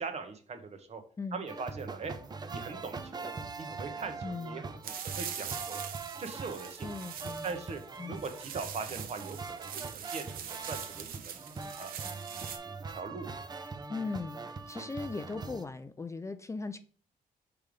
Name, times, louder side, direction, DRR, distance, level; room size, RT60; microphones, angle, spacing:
voice 1, 0.0-1.0 1.3-2.1 2.5-3.3 3.6-5.8 6.2-6.9 7.4-7.8 8.1-11.4 11.8-12.2 12.9-13.4, right 4 dB, 50° right, 7 dB, 1.1 m, -41 dB
sound 1, 1.5-15.6, right 4 dB, 30° right, 0.6 m, -42 dB
voice 2, 4.2-4.6 6.8-7.4 8.0-8.2 13.9-16.8, left 3 dB, 20° left, 10 dB, 0.4 m, -38 dB
sound 2, 4.8-12.6, right 8 dB, 85° right, 0.8 m, -42 dB
5.4 x 3.4 x 5.2 m, 0.43 s
cardioid pair, 100°, 15 cm